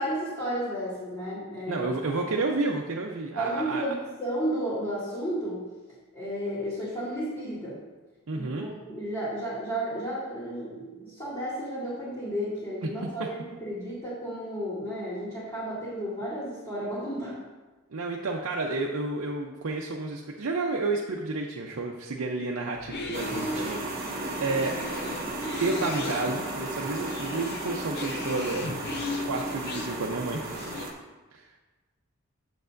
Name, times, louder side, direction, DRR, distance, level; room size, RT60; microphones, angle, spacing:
voice 1, 0.0-1.9 3.4-5.6 6.1-7.8 8.3-17.4, equal, 25° left, -14 dB, 2.4 m, -33 dB
voice 2, 1.7-3.8 8.3-8.7 13.0-13.3 17.9-24.7 25.6-28.7 29.2-30.4 31.3-31.5, right 3 dB, 85° right, -1 dB, 0.6 m, -31 dB
sound 1, 22.7-30.9, left 2 dB, 50° left, 0.6 m, -36 dB
sound 2, 23.1-30.9, right 2 dB, 45° right, 1.1 m, -35 dB
8.0 x 7.2 x 2.6 m, 1.2 s
head